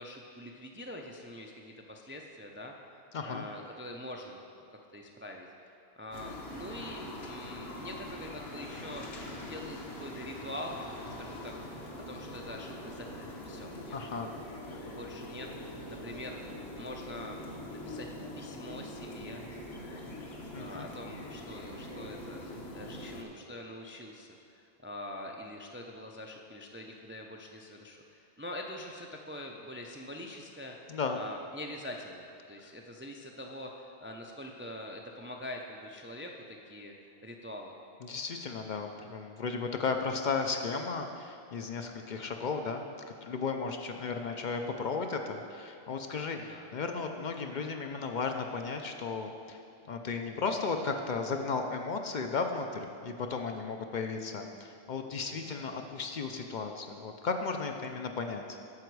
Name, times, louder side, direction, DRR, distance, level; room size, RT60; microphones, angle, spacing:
voice 1, 0.0-2.7 3.2-4.4 4.7-5.5 6.0-10.8 11.2-11.5 12.1-14.0 14.6-15.5 15.9-16.4 16.8-17.4 17.7-18.1 18.4-19.4 19.8-30.8 31.1-36.9 37.2-37.7 46.3-46.7 55.3-55.6, left 1 dB, 20° right, 1 dB, 0.3 m, -44 dB
voice 2, 3.1-3.4 13.9-14.3 14.7-14.8 20.5-20.9 30.9-31.2 38.0-49.6 49.9-58.4, left 4 dB, 55° left, 4 dB, 0.6 m, -35 dB
sound 1, 6.1-23.2, left 1 dB, 90° left, 1.2 m, -43 dB
9.6 x 6.9 x 4.7 m, 2.5 s
omnidirectional pair, 1.0 m